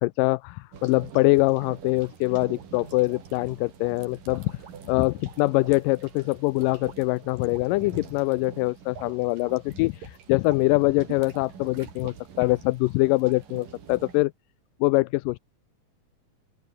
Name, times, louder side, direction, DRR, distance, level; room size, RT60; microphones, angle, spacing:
voice 1, 0.0-4.6 4.9-14.3 14.8-15.4, left 22 dB, 80° left, 2.0 m, -24 dB
sound 1, 0.7-14.3, right 7 dB, 70° right, 4.8 m, -45 dB
open air
omnidirectional pair, 4.1 m